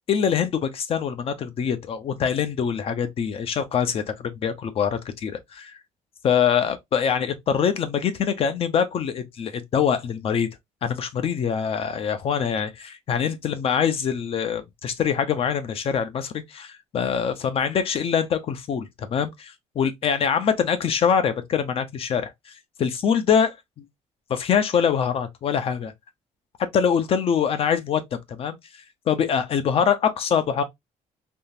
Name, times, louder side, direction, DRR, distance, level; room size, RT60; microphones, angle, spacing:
voice 1, 0.1-5.7 6.2-10.5 10.8-22.5 22.8-23.5 24.3-25.9 26.7-28.0 28.3-28.6 29.1-30.6, left 7 dB, 45° left, 0.6 m, -24 dB
3.6 x 2.4 x 2.6 m
cardioid pair, 165°, 14 cm